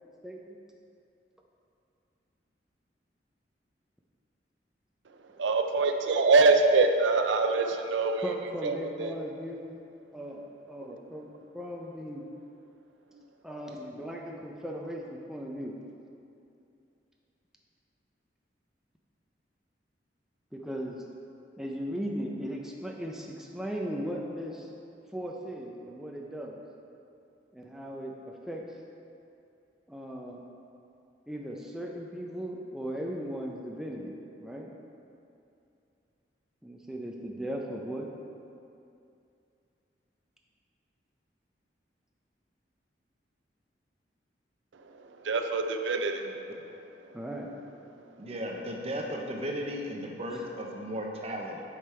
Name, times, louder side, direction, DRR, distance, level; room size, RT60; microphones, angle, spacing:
voice 1, 0.2-0.6 8.2-9.8 10.1-12.2 13.4-15.8 20.5-21.0 21.6-24.7 25.1-26.6 27.5-28.1 28.5-28.7 29.9-30.4 31.3-34.1 34.4-34.7 36.6-38.1 47.1-47.6, equal, 5° right, -1 dB, 0.5 m, -37 dB
voice 2, 5.4-8.2 8.6-9.1 45.2-46.2, right 3 dB, 90° right, 5 dB, 0.5 m, -24 dB
voice 3, 46.2-46.6 48.2-51.6, equal, 35° right, 0 dB, 0.8 m, -36 dB
8.1 x 5.2 x 4.4 m, 2.6 s
head